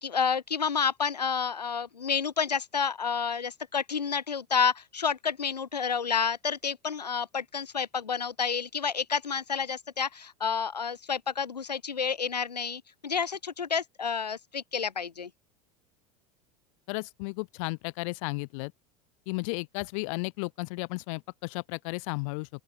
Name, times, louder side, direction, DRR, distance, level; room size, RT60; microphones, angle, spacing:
voice 1, 0.0-15.3, left 6 dB, 80° left, 0.9 m, -30 dB
voice 2, 16.9-18.7 19.3-22.5, left 29 dB, 55° left, 1.1 m, -34 dB
open air
figure-of-eight pair, 75°, 20 cm